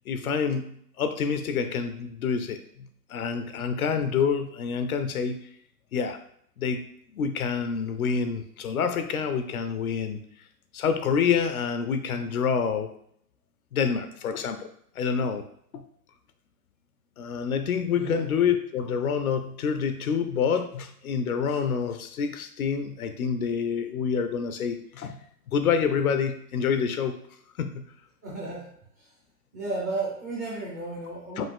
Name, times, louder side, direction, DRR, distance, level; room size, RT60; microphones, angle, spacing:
voice 1, 0.1-5.4 5.9-6.2 6.6-6.8 7.1-10.2 10.7-12.9 13.7-14.7 15.0-15.4 15.7-15.8 17.2-25.2 25.5-27.1 27.6-27.8 31.4-31.5, left 6 dB, 65° left, 8 dB, 0.7 m, -27 dB
voice 2, 28.2-28.6 29.0-29.1 29.5-31.5, right 3 dB, 10° right, -6 dB, 0.5 m, -33 dB
5.3 x 2.6 x 3.6 m, 0.66 s
hypercardioid pair, 145°, 47 cm